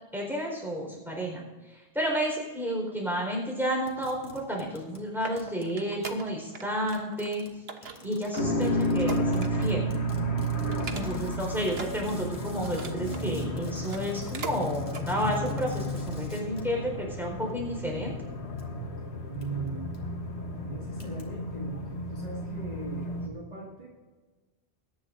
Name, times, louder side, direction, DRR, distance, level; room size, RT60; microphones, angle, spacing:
voice 1, 0.1-7.4 7.8-9.9 10.9-18.1, equal, ahead, -1 dB, 4.3 m, -31 dB
sound 1, 3.8-5.1 5.4-5.8 6.0-6.3 6.9-16.8 17.5-17.8 18.6-18.7 19.4-19.7 19.9-20.0 21.0-21.2, equal, 40° left, 2.3 m, -50 dB
sound 2, 4.7-6.7 6.9-7.3 7.7-9.8 10.2-10.3 10.7-11.4 11.7-13.3 13.8-14.6 14.9-15.1 15.6-15.7, right 5 dB, 70° right, 1.3 m, -41 dB
sound 3, 8.4-23.3, equal, 90° left, 1.6 m, -32 dB
voice 2, 19.3-20.0 20.5-23.9, right 4 dB, 40° right, -4 dB, 2.2 m, -40 dB
22.5 x 10.5 x 2.6 m, 1.3 s
omnidirectional pair, 1.1 m